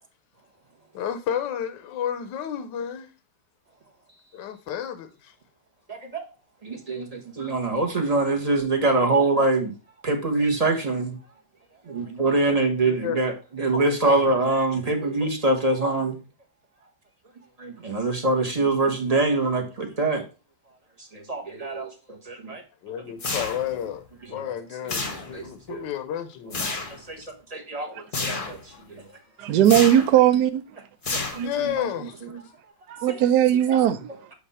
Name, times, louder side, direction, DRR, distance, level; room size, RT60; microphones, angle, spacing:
voice 1, 0.9-3.1 4.3-5.3 12.8-13.2 14.0-14.3 22.8-26.5 27.2-27.3 28.7-28.8 31.4-32.3, left 9 dB, 75° left, 1.4 m, -31 dB
voice 2, 5.9-6.2 6.6-9.7 10.0-11.2 11.9-16.2 17.6-20.2 21.1-21.9 22.3-22.6 23.4-23.5 25.3-25.8 27.1-27.2 27.5-28.6 28.9-29.0 31.3-31.5 33.7-33.8, right 2 dB, 25° right, 1.0 m, -24 dB
sound 1, 23.2-23.9 24.9-25.6 26.5-27.0 28.1-28.6 29.6-30.2 31.0-31.7, left 3 dB, 35° left, 1.0 m, -30 dB
voice 3, 29.4-30.6 31.4-31.5 32.9-34.3, right 11 dB, 70° right, 1.2 m, -19 dB
8.3 x 2.8 x 5.4 m
omnidirectional pair, 1.9 m